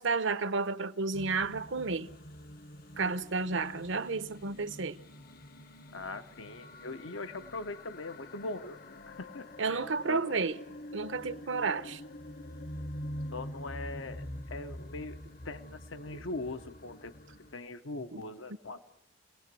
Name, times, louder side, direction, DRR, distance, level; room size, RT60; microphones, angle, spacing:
voice 1, 0.0-2.1 3.0-5.0 9.6-10.5 10.9-12.0 18.1-18.2, right 4 dB, 75° right, 0.9 m, -31 dB
sound 1, 1.1-17.5, left 1 dB, 45° left, 0.8 m, -46 dB
voice 2, 5.9-8.8 9.1-9.8 10.1-10.3 13.3-15.2 15.4-17.1 17.5-18.8, left 2 dB, 85° left, 1.1 m, -41 dB
29.0 x 19.0 x 7.7 m
head